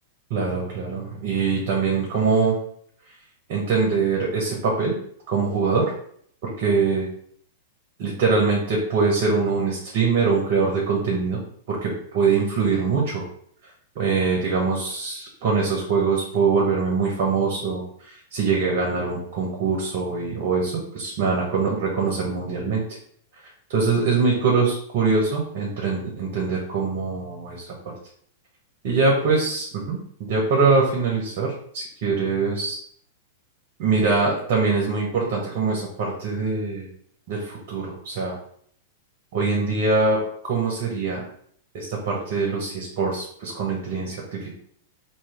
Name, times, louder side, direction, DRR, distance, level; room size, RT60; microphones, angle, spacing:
voice 1, 0.3-2.6 3.5-4.9 5.3-5.9 6.4-7.1 8.0-11.4 11.7-13.2 13.9-23.0 23.7-27.9 28.8-32.8 33.8-36.9 37.3-38.3 39.3-41.2 41.7-44.5, right 4 dB, 55° right, -1 dB, 1.4 m, -23 dB
3.1 x 3.1 x 4.6 m, 0.62 s
hypercardioid pair, 105°, 0 cm